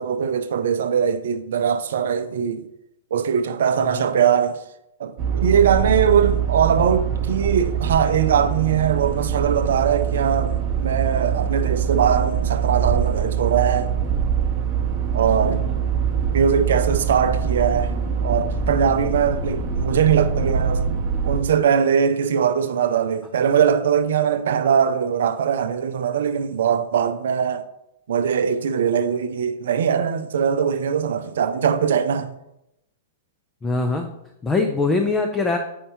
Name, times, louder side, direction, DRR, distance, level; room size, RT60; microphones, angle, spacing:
voice 1, 0.0-2.7 3.1-4.6 5.0-13.9 15.1-15.6 16.3-17.9 18.2-21.0 21.3-27.7 28.1-32.3, right 7 dB, 55° right, 0.5 m, -21 dB
sound 1, 5.2-21.4, right 7 dB, 30° right, 0.9 m, -24 dB
voice 2, 33.6-34.1 34.4-35.6, left 3 dB, 15° left, 0.6 m, -22 dB
8.5 x 5.4 x 2.8 m
figure-of-eight pair, 105°, 0 cm